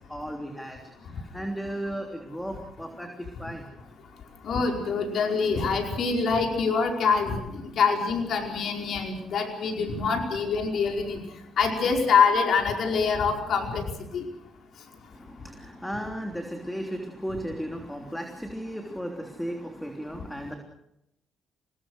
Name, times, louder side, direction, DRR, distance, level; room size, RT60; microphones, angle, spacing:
voice 1, 0.1-0.8 1.3-3.6 15.1-20.6, equal, 5° left, 3 dB, 3.3 m, -35 dB
voice 2, 4.4-11.2 11.6-13.8 14.1-14.2, left 5 dB, 65° left, 2 dB, 5.0 m, -25 dB
28.0 x 19.5 x 6.4 m, 0.85 s
cardioid pair, 90°, 0 cm